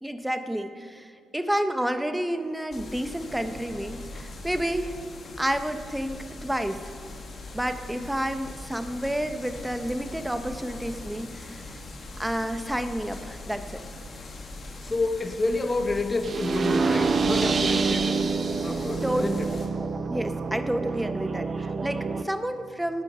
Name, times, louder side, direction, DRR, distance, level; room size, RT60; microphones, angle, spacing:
voice 1, 0.0-4.9 5.4-6.9 7.5-11.7 12.2-13.8 19.0-19.3 20.1-23.0, right 1 dB, 5° right, 8 dB, 1.1 m, -30 dB
sound 1, 2.7-19.7, left 2 dB, 50° left, 2.2 m, -41 dB
voice 2, 14.8-18.2 18.6-19.5, left 2 dB, 30° left, 6 dB, 1.3 m, -29 dB
sound 2, 16.2-22.2, right 4 dB, 45° right, 0.8 m, -27 dB
17.0 x 8.8 x 5.8 m, 2.3 s
supercardioid pair, 70°, 0 cm